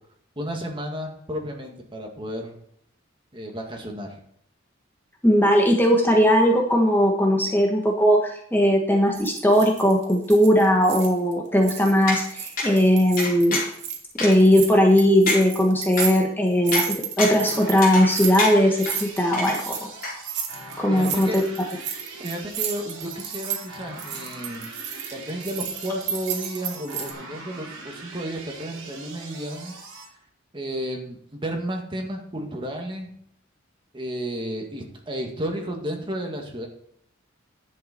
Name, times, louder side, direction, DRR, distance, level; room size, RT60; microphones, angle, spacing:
voice 1, 0.4-2.6 3.3-4.2 20.9-21.4 22.2-24.7 25.1-29.7 30.5-33.1 33.9-36.7, right 1 dB, 25° right, 2 dB, 2.0 m, -32 dB
voice 2, 5.2-13.6 14.2-16.8 17.2-19.8 20.8-21.4, equal, 10° left, 1 dB, 1.2 m, -19 dB
sound 1, 9.1-11.3 11.6-14.0 14.3-27.1, right 8 dB, 60° right, 2.1 m, -33 dB
sound 2, 12.1-12.2 12.6-12.7 13.2-13.8 14.2-14.3 14.8-14.9 15.3-15.4 16.0-16.1 16.7-16.8 17.2-17.4 17.8-18.1 18.4-18.9 19.3-19.8 20.0-20.1, left 3 dB, 45° left, 4.5 m, -26 dB
sound 3, 17.3-30.1, right 3 dB, 75° right, 3.7 m, -41 dB
10.5 x 8.0 x 4.3 m, 0.68 s
head